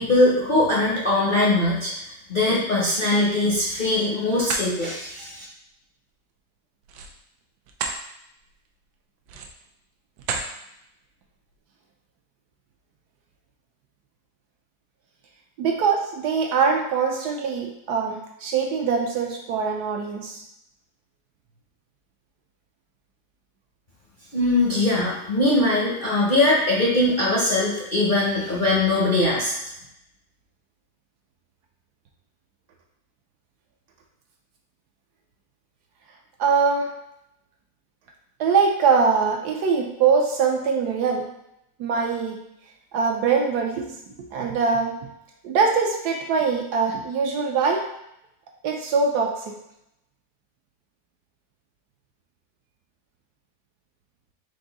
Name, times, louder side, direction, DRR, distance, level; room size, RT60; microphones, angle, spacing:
voice 1, 0.0-1.9 2.3-5.4 24.3-29.5, left 2 dB, 45° left, -6 dB, 0.6 m, -21 dB
sound 1, 3.4-3.9 4.3-4.7 6.8-8.0 8.5-8.7 9.2-9.7 10.2-10.5, right 4 dB, 90° right, 1.3 m, -32 dB
voice 2, 15.6-20.4 24.9-25.0 36.4-36.9 38.4-41.3 41.8-42.4 42.9-43.9 44.3-44.9 45.4-47.8 48.6-49.5, right 5 dB, 70° right, 1 dB, 1.1 m, -22 dB
4.8 x 2.6 x 3.9 m, 0.81 s
omnidirectional pair, 1.9 m